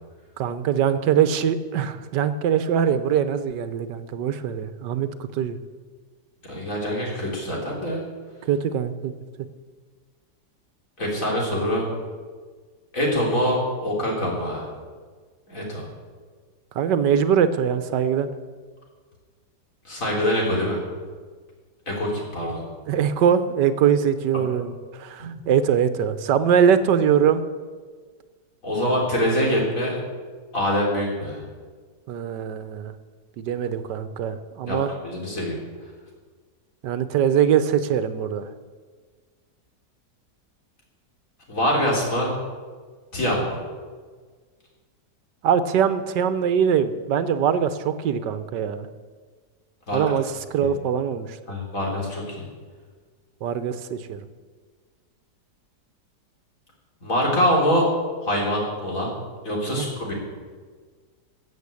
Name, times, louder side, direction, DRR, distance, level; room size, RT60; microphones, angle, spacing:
voice 1, 0.4-5.6 8.4-9.1 16.7-18.3 22.9-27.4 32.1-32.9 33.4-34.9 36.8-38.5 45.4-48.9 49.9-51.4 53.4-54.2 59.8-59.9, right 8 dB, 80° right, 12 dB, 1.4 m, -22 dB
voice 2, 6.5-8.0 11.0-11.8 12.9-14.7 15.5-15.9 19.9-20.8 21.9-22.6 25.2-25.4 28.6-30.0 30.5-31.4 34.7-34.8 35.0-35.6 41.5-42.3 43.1-43.6 49.9-50.0 50.6-50.7 51.5-52.4 57.0-57.9 58.2-59.1 59.4-60.1, equal, 50° left, -2 dB, 3.9 m, -24 dB
15.0 x 7.4 x 8.3 m, 1.5 s
omnidirectional pair, 1.8 m